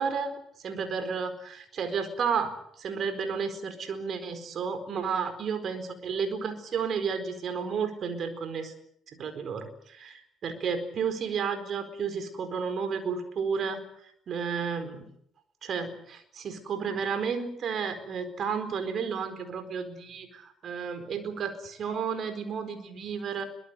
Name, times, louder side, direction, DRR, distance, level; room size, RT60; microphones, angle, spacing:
voice 1, 0.0-2.5 2.8-8.7 9.1-13.8 14.3-15.1 15.6-23.4, right 6 dB, 50° right, 9 dB, 4.4 m, -32 dB
23.0 x 21.0 x 8.0 m, 0.71 s
hypercardioid pair, 55°, 0 cm